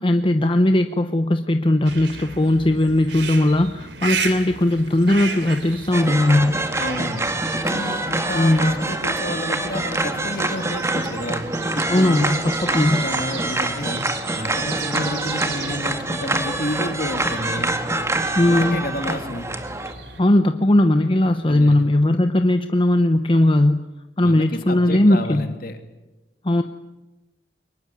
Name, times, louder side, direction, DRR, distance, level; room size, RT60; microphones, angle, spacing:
voice 1, 0.0-6.6 8.3-8.8 11.9-13.0 18.4-18.8 20.2-23.9 24.2-25.5 26.4-26.6, left 1 dB, 30° left, 7 dB, 0.9 m, -18 dB
sound 1, 1.8-20.2, right 5 dB, 80° right, 3.1 m, -35 dB
sound 2, 5.9-19.9, right 2 dB, 15° right, 1.8 m, -25 dB
voice 2, 6.8-7.3 7.6-11.4 11.8-14.1 14.3-17.8 18.5-19.5 21.5-21.8 24.2-25.8, left 1 dB, 55° left, 6 dB, 2.7 m, -30 dB
23.0 x 20.0 x 9.7 m, 1.1 s
head